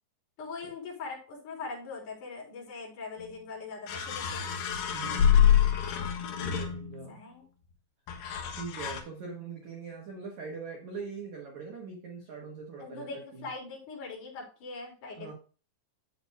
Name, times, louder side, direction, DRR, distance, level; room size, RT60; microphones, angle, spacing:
voice 1, 0.4-4.5 7.1-7.5 12.8-15.3, left 4 dB, 40° left, -3 dB, 4.8 m, -41 dB
sound 1, 3.2-3.3 3.9-7.1 8.1-9.0, left 9 dB, 65° left, 3.0 m, -26 dB
voice 2, 4.9-5.6 6.4-7.2 8.4-13.1 13.4-13.5 15.2-15.3, right 5 dB, 80° right, 0 dB, 1.6 m, -42 dB
11.0 x 7.1 x 2.2 m, 0.36 s
omnidirectional pair, 5.9 m